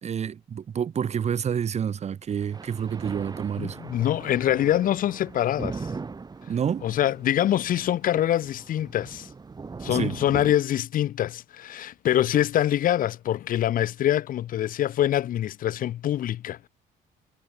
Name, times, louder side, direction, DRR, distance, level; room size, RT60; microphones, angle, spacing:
voice 1, 0.0-3.8 6.5-6.9 9.9-10.2, right 8 dB, 40° right, 1.6 m, -28 dB
sound 1, 2.3-10.5, right 4 dB, 25° right, 2.6 m, -39 dB
voice 2, 3.6-5.9 6.8-9.3 9.8-16.7, left 12 dB, 55° left, 0.9 m, -25 dB
cardioid pair, 110°, 17 cm